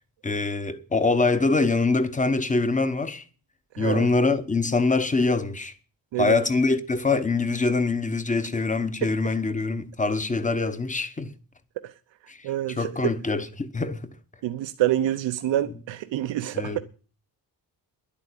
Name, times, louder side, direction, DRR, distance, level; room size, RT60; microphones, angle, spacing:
voice 1, 0.2-3.2 3.8-5.7 6.2-11.3 12.3-12.4 12.7-14.1 16.5-16.8, left 3 dB, 15° left, 1.0 m, -24 dB
voice 2, 3.7-4.1 6.1-6.4 11.8-11.9 12.4-13.1 14.4-16.8, right 13 dB, 90° right, 0.8 m, -27 dB
11.0 x 8.6 x 8.4 m
wide cardioid pair, 145°, 43 cm